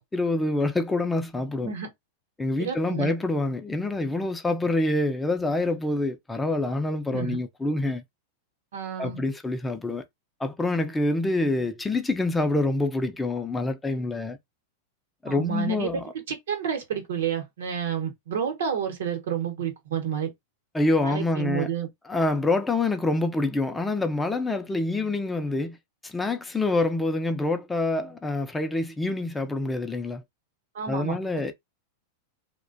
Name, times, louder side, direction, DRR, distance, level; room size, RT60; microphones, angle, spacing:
voice 1, 0.1-1.7 2.4-8.0 9.0-10.0 10.4-14.4 15.2-16.1 20.7-21.7 22.1-25.8 26.0-30.2 30.9-31.5, left 2 dB, 10° left, 0.4 m, -26 dB
voice 2, 2.6-3.1 7.1-7.4 8.7-9.2 15.3-20.3 21.0-21.9 30.7-31.2, right 8 dB, 80° right, 0.9 m, -30 dB
2.4 x 2.2 x 2.4 m
hypercardioid pair, 130°, 0 cm